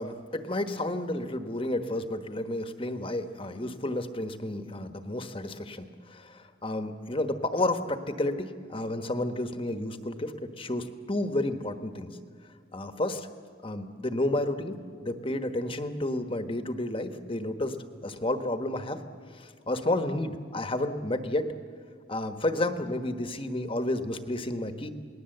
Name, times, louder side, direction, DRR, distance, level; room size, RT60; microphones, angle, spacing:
voice 1, 0.0-12.1 12.7-13.3 13.6-17.8 18.0-19.0 19.3-21.5 22.1-24.9, left 1 dB, 25° left, 8 dB, 1.2 m, -31 dB
28.5 x 20.0 x 7.9 m, 2.2 s
head